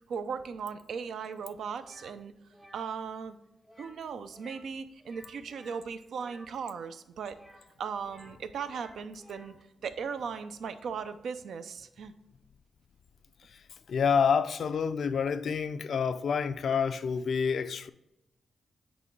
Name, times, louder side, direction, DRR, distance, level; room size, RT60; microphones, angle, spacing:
voice 1, 0.1-2.3 2.7-3.4 3.8-7.4 7.8-9.5 9.8-12.1, right 6 dB, 75° right, 0.4 m, -37 dB
sound 1, 1.8-2.1 2.5-2.9 3.6-4.0 4.3-4.7 5.0-6.5 7.3-8.4 8.7-9.6, equal, 5° right, 0.6 m, -55 dB
voice 2, 13.9-17.9, left 6 dB, 65° left, 0.3 m, -28 dB
8.1 x 3.0 x 4.5 m
wide cardioid pair, 115°, 0 cm